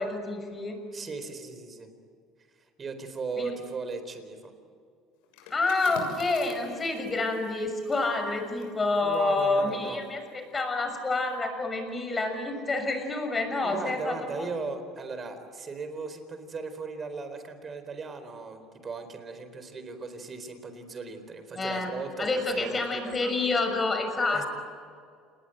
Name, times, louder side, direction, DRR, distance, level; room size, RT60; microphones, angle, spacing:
voice 1, 0.0-0.8 3.4-3.5 5.5-10.2 10.5-14.5 21.6-21.9 22.2-24.5, left 3 dB, 20° left, 5 dB, 6.3 m, -28 dB
voice 2, 0.9-1.9 2.8-4.5 9.0-10.0 13.6-23.1 24.3-24.5, right 4 dB, 30° right, 9 dB, 4.3 m, -37 dB
sound 1, 5.2-10.7 11.1-11.4, left 5 dB, 85° left, 6.7 m, -48 dB
28.5 x 20.5 x 9.1 m, 2.2 s
cardioid pair, 125°, 0 cm